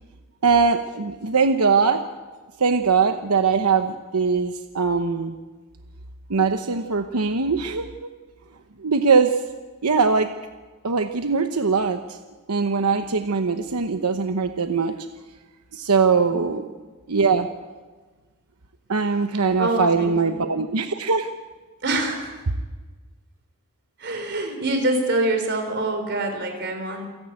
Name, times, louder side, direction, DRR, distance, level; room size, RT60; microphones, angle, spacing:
voice 1, 0.4-2.0 2.6-5.3 6.3-8.1 8.8-9.4 9.8-10.3 10.8-12.2 12.5-14.9 15.7-16.7 17.1-17.5 18.9-21.3, right 5 dB, 90° right, 7 dB, 1.0 m, -21 dB
voice 2, 19.6-20.5 21.8-22.3 24.0-27.1, right 2 dB, 50° right, 5 dB, 4.1 m, -25 dB
28.0 x 11.0 x 8.9 m, 1.3 s
head